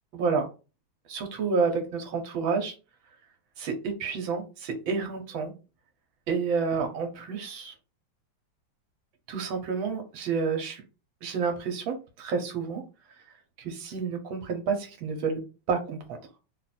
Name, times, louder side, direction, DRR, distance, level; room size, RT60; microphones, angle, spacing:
voice 1, 0.1-0.5 1.1-2.7 3.6-5.5 6.3-7.7 9.3-10.8 11.2-12.8 13.6-15.4 15.7-16.0, right 5 dB, 80° right, 5 dB, 1.7 m, -29 dB
3.8 x 2.6 x 4.1 m, 0.32 s
omnidirectional pair, 2.2 m